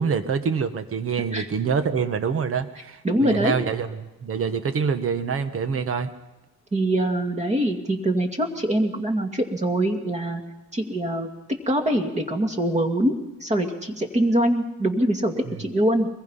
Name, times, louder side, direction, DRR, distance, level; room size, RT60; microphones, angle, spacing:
voice 1, 0.0-3.9 4.2-6.1 15.5-15.6, right 6 dB, 40° right, 10 dB, 1.5 m, -25 dB
voice 2, 3.0-3.6 6.7-10.4 10.7-11.3 11.7-13.1 13.4-15.3 15.6-16.1, right 1 dB, 20° right, 5 dB, 2.3 m, -23 dB
24.0 x 21.0 x 5.7 m, 1.0 s
cardioid pair, 160°, 34 cm